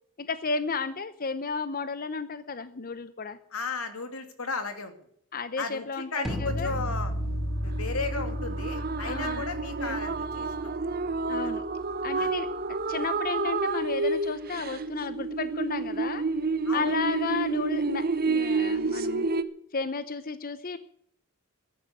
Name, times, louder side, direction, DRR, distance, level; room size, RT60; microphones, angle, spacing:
voice 1, 0.2-3.4 5.3-6.7 9.0-9.5 11.3-11.6 12.0-12.5 12.9-16.2 16.7-19.3 19.7-20.8, left 4 dB, 40° left, 12 dB, 0.8 m, -33 dB
voice 2, 3.5-4.9 5.6-7.1 7.6-10.7 11.4-11.5 12.1-12.3 16.6-16.9, left 3 dB, 90° left, 7 dB, 2.7 m, -35 dB
sound 1, 6.2-12.2, equal, ahead, 2.6 m, -34 dB
sound 2, 6.7-19.4, right 3 dB, 45° right, 0.9 m, -30 dB
14.5 x 10.5 x 8.0 m, 0.67 s
head